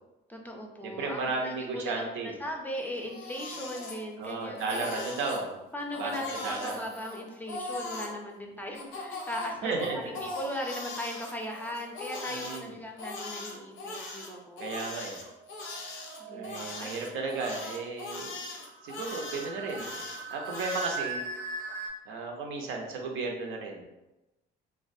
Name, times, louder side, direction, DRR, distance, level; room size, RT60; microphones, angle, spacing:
voice 1, 0.3-4.9 5.7-14.6 16.2-16.9, equal, 10° left, 1 dB, 0.4 m, -38 dB
voice 2, 0.8-2.3 4.2-5.6 6.0-6.1 6.4-6.7 9.6-10.0 12.3-12.7 14.6-15.2 16.3-18.3 18.8-21.2 22.1-23.8, right 3 dB, 85° right, 1 dB, 0.5 m, -34 dB
Crying sobbing, 2.9-4.3 4.6-5.4 5.9-8.1 8.7-12.6 13.0-21.0, left 3 dB, 85° left, 0.5 m, -40 dB
sound 1, 10.1-10.7 15.1-17.1 18.7-21.9, right 3 dB, 45° right, 0.5 m, -40 dB
2.3 x 2.1 x 2.5 m, 0.99 s
cardioid pair, 90°, 20 cm